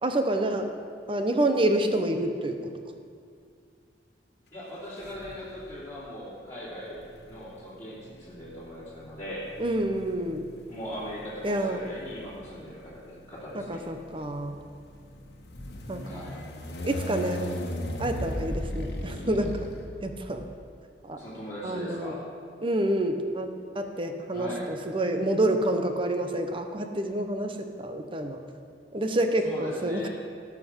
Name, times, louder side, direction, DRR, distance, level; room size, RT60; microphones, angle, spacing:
voice 1, 0.0-0.7 1.1-2.7 9.6-10.5 11.4-11.8 13.7-14.6 15.9-16.2 16.9-17.4 18.0-19.7 20.0-20.5 21.0-21.2 21.6-22.1 22.6-23.5 23.7-28.4 28.9-30.1, right 1 dB, 30° right, 6 dB, 0.9 m, -28 dB
voice 2, 4.5-9.5 10.7-13.8 16.0-16.4 21.1-22.2 24.3-24.7 29.4-30.1, equal, 15° left, -11 dB, 3.1 m, -39 dB
sound 1, 5.0-5.7 6.8-20.5, left 1 dB, 65° left, 1.4 m, -38 dB
17.5 x 6.0 x 6.3 m, 2.2 s
head